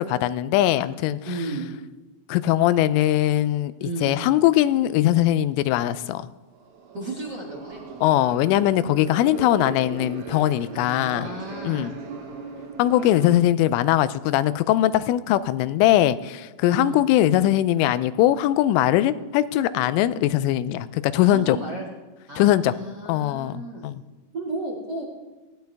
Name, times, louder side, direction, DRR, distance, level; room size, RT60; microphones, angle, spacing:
voice 1, 0.0-1.2 2.3-6.2 8.0-11.3 11.6-11.9 12.8-21.6 22.4-22.7 23.1-24.0, left 13 dB, 85° left, 14 dB, 3.1 m, -21 dB
voice 2, 1.2-1.7 3.8-4.2 6.9-7.8 10.7-12.0 16.6-17.0 21.2-21.9 22.3-23.9 24.3-25.0, right 2 dB, 55° right, -3 dB, 1.1 m, -33 dB
sound 1, 6.6-13.4, right 5 dB, 90° right, 4.2 m, -38 dB
19.5 x 16.5 x 3.5 m, 1.2 s
omnidirectional pair, 5.6 m